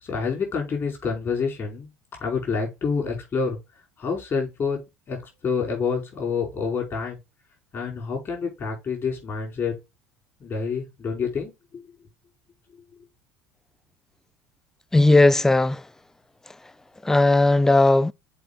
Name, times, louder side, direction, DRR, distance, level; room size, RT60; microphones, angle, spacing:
voice 1, 0.0-1.9 2.2-3.6 4.0-4.8 5.1-7.2 7.7-9.7 10.4-11.5, left 5 dB, 35° left, 4.9 m, -27 dB
voice 2, 14.9-15.8 17.0-18.1, left 2 dB, 5° left, 0.3 m, -17 dB
7.7 x 4.9 x 4.1 m
figure-of-eight pair, 65°, 7 cm